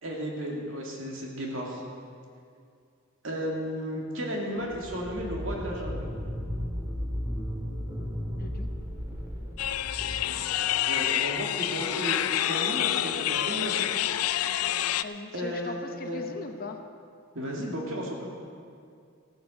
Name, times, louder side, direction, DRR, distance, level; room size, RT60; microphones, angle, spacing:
voice 1, 0.0-1.8 3.2-6.0 10.8-13.7 15.3-16.2 17.3-18.3, equal, 65° right, -2 dB, 2.5 m, -34 dB
sound 1, 4.6-11.0, equal, 15° right, 1.9 m, -35 dB
voice 2, 8.4-8.7 15.0-16.8, left 2 dB, 40° left, 5 dB, 0.8 m, -39 dB
sound 2, 9.6-15.0, left 12 dB, 85° left, 0.4 m, -28 dB
15.0 x 9.2 x 6.5 m, 2.3 s
head